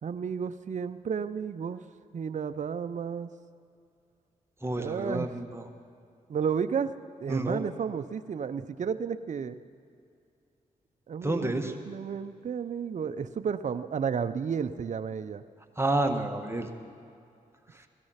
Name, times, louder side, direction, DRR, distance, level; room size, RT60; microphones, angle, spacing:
voice 1, 0.0-1.8 2.1-3.3 4.8-5.3 6.3-6.9 7.2-9.6 11.1-15.4, right 6 dB, 55° right, 11 dB, 0.6 m, -32 dB
voice 2, 4.6-5.6 7.3-7.6 11.2-11.7 15.8-16.7 17.7-17.8, right 2 dB, 15° right, 4 dB, 1.6 m, -29 dB
17.5 x 13.0 x 5.8 m, 2.5 s
cardioid pair, 55°, 15 cm